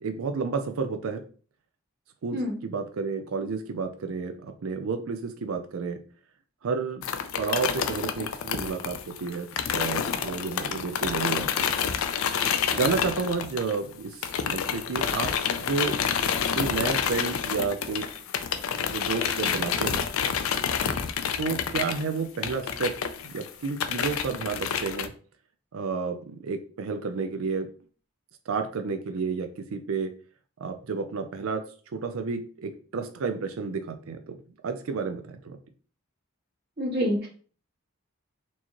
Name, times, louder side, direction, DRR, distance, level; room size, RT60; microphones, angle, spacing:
voice 1, 0.0-1.2 2.2-6.0 6.6-7.0 7.4-11.7 12.7-15.3 15.6-16.0 16.5-18.1 18.9-20.1 21.4-22.9 23.2-25.1 25.7-27.7 28.5-30.1 30.6-31.6 31.9-34.4 34.6-35.6, right 5 dB, 75° right, 7 dB, 0.4 m, -31 dB
sound 1, 7.0-13.9 14.2-25.1, left 7 dB, 80° left, 0.4 m, -28 dB
voice 2, 36.8-37.3, equal, 50° right, -3 dB, 1.6 m, -26 dB
4.5 x 2.9 x 2.9 m, 0.41 s
head